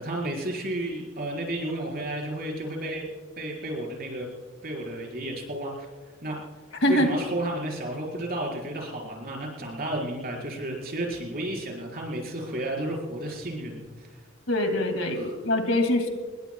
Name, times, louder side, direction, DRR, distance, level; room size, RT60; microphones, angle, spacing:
voice 1, 0.0-3.1 3.4-4.3 4.6-5.9 6.2-6.4 6.9-14.1 15.1-15.3, right 1 dB, 45° right, 0 dB, 4.8 m, -32 dB
voice 2, 6.8-7.1 14.5-16.1, left 1 dB, 65° left, 5 dB, 2.5 m, -24 dB
27.0 x 21.5 x 2.3 m, 1.4 s
head